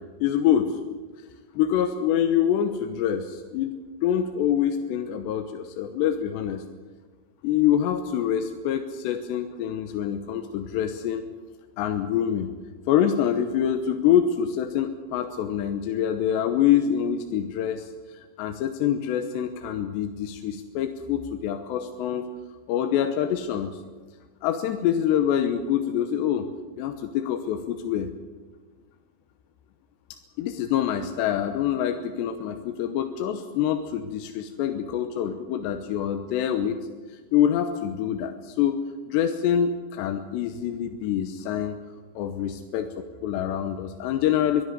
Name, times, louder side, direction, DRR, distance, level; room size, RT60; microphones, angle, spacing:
voice 1, 0.2-0.8 1.6-6.6 7.4-11.3 11.8-12.5 12.9-22.3 22.7-23.7 24.4-26.5 26.8-28.1 30.4-36.8 37.1-38.8 39.1-41.8 42.2-42.9 43.2-44.6, left 9 dB, 75° left, 7 dB, 3.0 m, -25 dB
23.5 x 13.0 x 9.5 m, 1.4 s
omnidirectional pair, 5.4 m